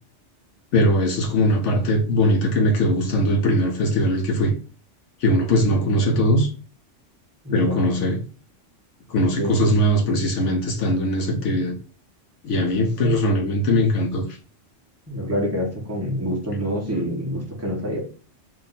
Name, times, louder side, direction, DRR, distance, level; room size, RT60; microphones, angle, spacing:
voice 1, 0.7-4.5 5.2-6.5 7.5-8.2 9.1-11.8 12.4-14.3, equal, 75° left, 1.0 m, -20 dB
voice 2, 7.4-7.9 9.4-9.6 11.3-11.5 15.1-18.0, equal, 15° right, 1.0 m, -27 dB
3.7 x 2.6 x 3.8 m
omnidirectional pair, 1.3 m